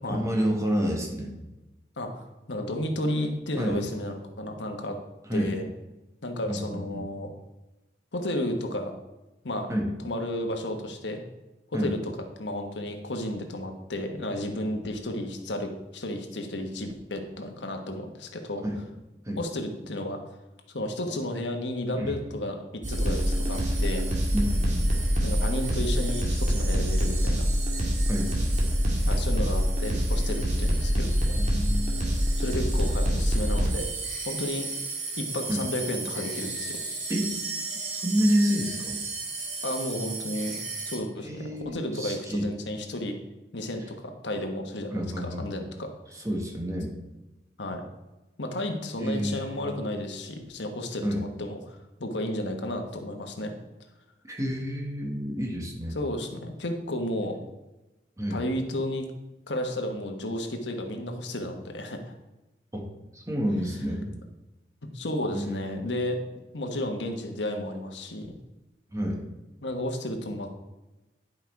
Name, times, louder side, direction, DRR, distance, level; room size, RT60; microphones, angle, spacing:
voice 1, 0.0-1.3 3.6-3.9 5.3-5.5 6.5-7.1 9.7-9.9 11.7-11.9 18.6-18.8 19.3-19.4 22.0-22.1 24.3-24.9 28.1-28.3 31.4-32.0 35.5-35.6 37.1-37.3 38.0-39.0 41.2-42.5 44.9-45.5 46.1-46.9 49.0-49.7 51.0-51.2 54.2-56.0 58.2-58.4 62.7-62.8 63.1-64.1 65.3-65.9 68.9-69.2, equal, 20° right, 0 dB, 1.6 m, -29 dB
voice 2, 2.0-5.0 5.3-5.6 6.2-7.3 8.1-8.9 9.4-9.7 10.0-11.2 11.7-18.7 19.4-20.2 20.7-24.0 25.2-27.5 29.1-31.4 32.4-33.9 34.2-34.7 35.2-36.8 39.6-40.5 40.9-43.2 43.5-45.9 47.6-47.8 48.4-53.5 55.9-57.4 58.3-59.1 59.5-62.1 64.8-66.2 66.5-68.3 69.6-70.6, left 1 dB, 90° left, 4 dB, 1.3 m, -32 dB
sound 1, 22.8-41.0, equal, 40° right, 2.2 m, -27 dB
11.0 x 5.5 x 4.7 m, 1.0 s
head